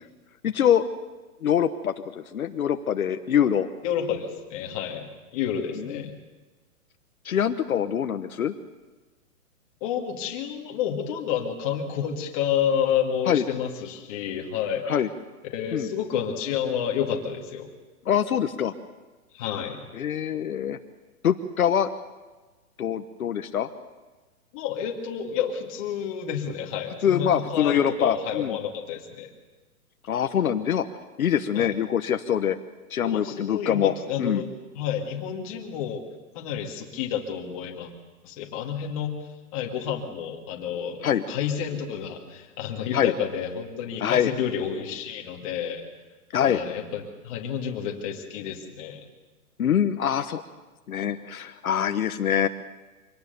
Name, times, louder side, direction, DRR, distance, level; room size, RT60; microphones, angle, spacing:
voice 1, 0.4-0.9 1.4-3.7 5.8-6.0 7.2-8.5 13.3-13.4 14.9-15.1 15.7-15.9 18.1-18.7 19.9-20.8 21.2-21.9 22.8-23.7 27.0-28.5 30.1-30.9 31.2-32.6 32.9-33.9 34.2-34.4 41.0-41.2 42.9-43.1 44.0-44.3 46.3-46.6 49.6-50.4 50.9-52.5, left 9 dB, 65° left, 8 dB, 1.2 m, -24 dB
voice 2, 3.8-6.1 9.8-14.8 15.5-17.7 19.3-19.8 24.5-29.3 31.5-31.8 33.0-34.5 34.7-36.0 36.3-37.9 38.2-39.2 39.5-45.8 46.4-49.0, left 8 dB, 20° left, 1 dB, 2.2 m, -30 dB
24.5 x 18.5 x 6.9 m, 1.2 s
hypercardioid pair, 175°, 45 cm